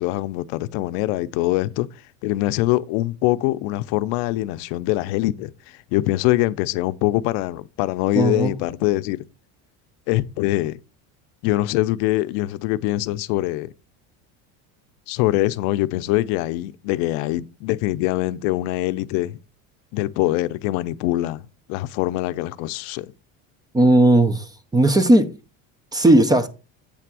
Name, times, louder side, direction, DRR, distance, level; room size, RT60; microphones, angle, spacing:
voice 1, 0.0-1.9 2.2-9.2 10.1-10.8 11.4-13.7 15.1-19.4 19.9-21.4 21.7-23.1, left 16 dB, 80° left, 0.6 m, -23 dB
voice 2, 8.1-8.5 23.7-25.3 25.9-26.5, right 1 dB, 10° right, 0.5 m, -16 dB
8.4 x 3.4 x 6.0 m
cardioid pair, 155°, 35 cm